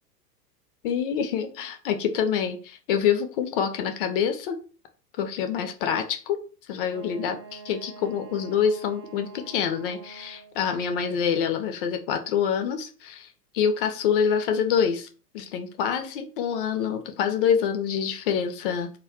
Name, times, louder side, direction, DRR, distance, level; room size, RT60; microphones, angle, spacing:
voice 1, 0.8-4.6 5.2-6.4 6.7-13.3 13.5-15.1 15.3-18.9, left 7 dB, 35° left, 0.5 m, -26 dB
Wind instrument woodwind instrument, 6.9-10.6, right 4 dB, 25° right, 0.5 m, -46 dB
2.3 x 2.2 x 3.5 m
figure-of-eight pair, 95°, 48 cm